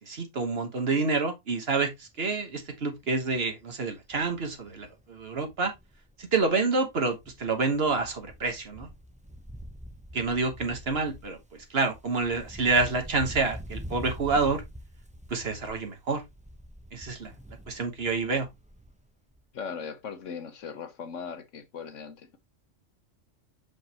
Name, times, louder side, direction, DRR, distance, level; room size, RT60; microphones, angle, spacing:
voice 1, 0.0-5.7 6.2-8.9 10.1-14.6 15.3-16.2 16.9-17.3 17.7-18.5, right 3 dB, 55° right, 1.5 m, -28 dB
Wind, 2.0-2.3 2.7-2.8 3.1-6.6 6.9-19.1 19.3-19.4, equal, 5° right, 0.8 m, -45 dB
voice 2, 19.5-22.4, left 6 dB, 75° left, 1.4 m, -39 dB
6.2 x 5.2 x 2.9 m
omnidirectional pair, 1.3 m